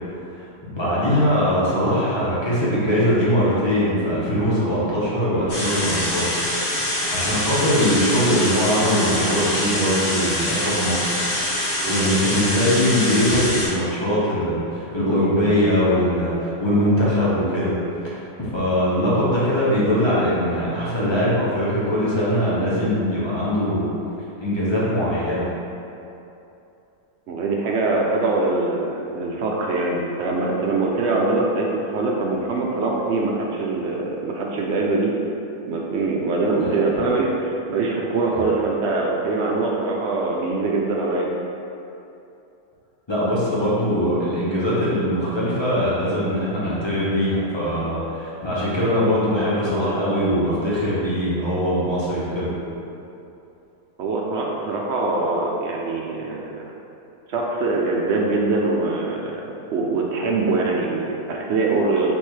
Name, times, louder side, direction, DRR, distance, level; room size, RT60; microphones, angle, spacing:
voice 1, 0.3-6.4 6.8-11.1 11.5-17.8 18.0-23.8 24.4-25.5 36.6-36.8 43.1-52.5, equal, 20° left, -9 dB, 0.9 m, -21 dB
sound 1, 5.5-13.7, left 1 dB, 45° left, 1.5 m, -25 dB
voice 2, 11.8-12.1 27.3-35.1 35.7-41.3 54.0-56.7 57.3-59.4 59.7-62.1, right 3 dB, 65° right, -2 dB, 0.7 m, -23 dB
3.5 x 3.2 x 4.4 m, 2.8 s
omnidirectional pair, 1.6 m